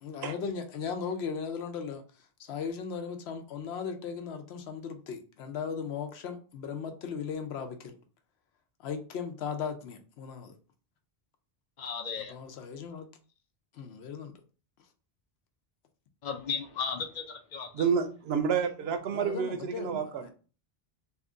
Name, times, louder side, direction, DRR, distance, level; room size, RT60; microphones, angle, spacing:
voice 1, 0.0-2.0 2.4-8.0 8.8-10.5 12.3-13.1 13.7-14.3 19.1-20.3, left 6 dB, 85° left, 0.9 m, -37 dB
voice 2, 11.8-12.4 16.2-17.9, left 6 dB, 55° left, 0.5 m, -35 dB
voice 3, 17.8-20.2, right 7 dB, 85° right, 0.8 m, -29 dB
2.8 x 2.4 x 3.6 m
omnidirectional pair, 1.0 m